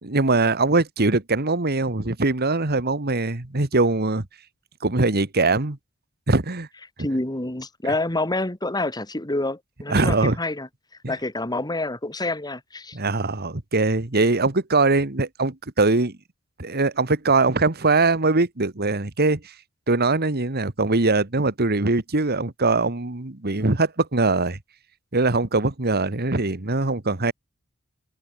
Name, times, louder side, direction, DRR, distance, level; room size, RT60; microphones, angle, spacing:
voice 1, 0.0-4.3 4.8-5.8 6.3-6.7 9.9-10.4 11.0-11.1 12.9-16.1 16.6-19.4 19.9-24.6 25.1-27.3, right 3 dB, 50° right, 1.8 m, -22 dB
voice 2, 7.0-10.7 11.1-13.0, left 2 dB, 20° left, 2.0 m, -27 dB
head